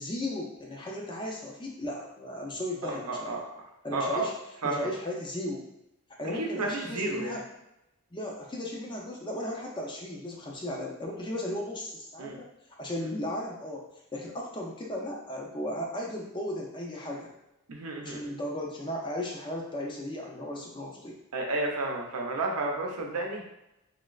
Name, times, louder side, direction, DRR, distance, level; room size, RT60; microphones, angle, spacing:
voice 1, 0.0-3.4 3.8-4.3 4.6-5.6 6.2-7.4 8.1-12.5 12.8-13.8 14.1-17.3 18.0-21.2, left 1 dB, 20° left, -2 dB, 0.5 m, -35 dB
voice 2, 2.8-3.4 3.9-4.3 4.6-4.9 6.3-7.4 12.2-12.4 17.7-18.2 21.3-23.4, right 2 dB, 90° right, 1 dB, 0.6 m, -31 dB
3.2 x 3.0 x 2.4 m, 0.88 s
head